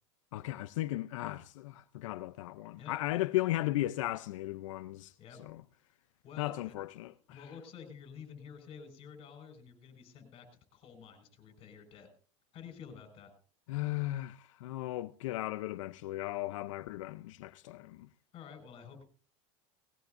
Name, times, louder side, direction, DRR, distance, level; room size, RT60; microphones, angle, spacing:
voice 1, 0.3-5.1 5.4-5.6 6.4-7.4 13.7-18.1, left 16 dB, 85° left, 0.6 m, -36 dB
voice 2, 6.2-6.7 7.3-10.5 10.7-12.1 12.5-13.3 18.3-19.0, left 7 dB, 35° left, 5.3 m, -50 dB
19.5 x 17.0 x 2.6 m
supercardioid pair, 145°, 16 cm